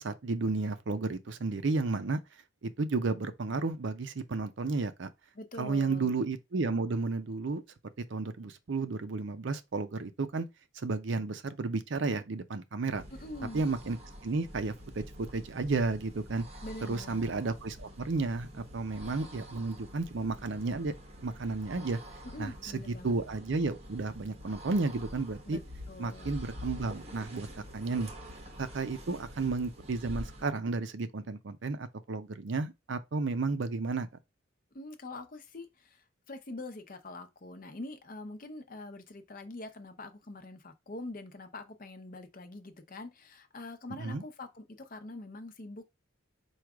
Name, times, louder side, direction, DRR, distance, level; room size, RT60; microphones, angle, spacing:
voice 1, 0.0-2.2 2.6-5.1 5.6-7.6 8.1-10.5 10.7-13.0 13.5-14.0 14.2-16.5 16.9-20.9 21.2-22.0 22.4-25.6 26.0-27.5 27.7-28.1 28.6-34.1 43.9-44.2, right 3 dB, 60° right, 0.5 m, -32 dB
voice 2, 5.3-6.1 13.1-13.6 16.6-17.3 22.2-23.1 25.5-25.6 25.9-26.4 34.7-45.8, left 2 dB, 40° left, 0.7 m, -44 dB
sound 1, 12.8-30.6, equal, 30° right, 0.8 m, -47 dB
4.6 x 2.4 x 4.8 m
head